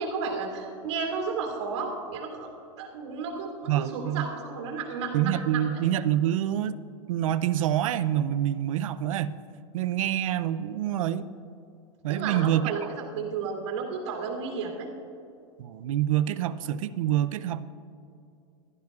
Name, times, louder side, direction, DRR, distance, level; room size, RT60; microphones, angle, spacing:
voice 1, 0.0-2.5 2.8-5.8 12.1-14.9, right 5 dB, 55° right, 0 dB, 2.7 m, -33 dB
voice 2, 3.7-4.3 5.1-6.8 7.1-9.3 9.7-11.3 12.0-12.7 15.6-17.6, right 11 dB, 80° right, 14 dB, 0.5 m, -26 dB
15.0 x 12.0 x 2.4 m, 2.5 s
supercardioid pair, 175°, 17 cm